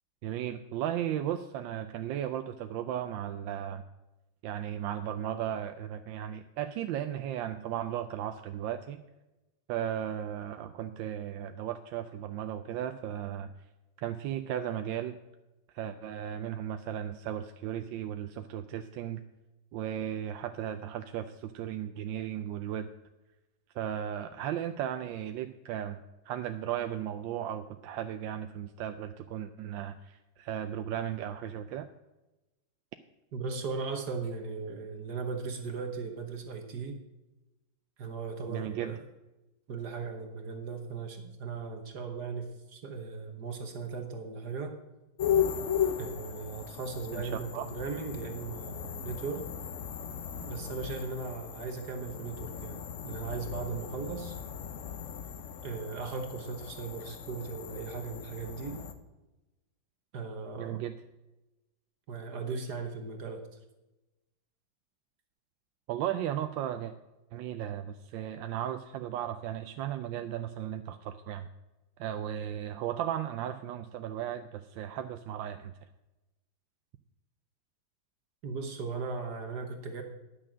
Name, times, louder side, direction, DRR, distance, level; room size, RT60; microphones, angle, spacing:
voice 1, 0.2-3.8 4.4-9.0 9.7-13.5 14.0-15.2 15.7-19.2 19.7-22.9 23.7-26.0 26.2-31.9 38.5-38.9 47.1-47.7 60.6-60.9 65.9-66.9 67.3-71.5 72.0-75.7, right 10 dB, 80° right, 8 dB, 1.3 m, -35 dB
voice 2, 33.3-37.0 38.0-39.0 39.7-44.8 46.0-49.5 50.4-52.8 53.0-54.3 55.6-58.8 60.1-60.8 62.1-63.4 78.4-80.0, right 4 dB, 60° right, 5 dB, 1.6 m, -37 dB
sound 1, 45.2-58.9, left 8 dB, 55° left, 0.9 m, -36 dB
10.5 x 6.6 x 7.4 m, 1.0 s
omnidirectional pair, 2.1 m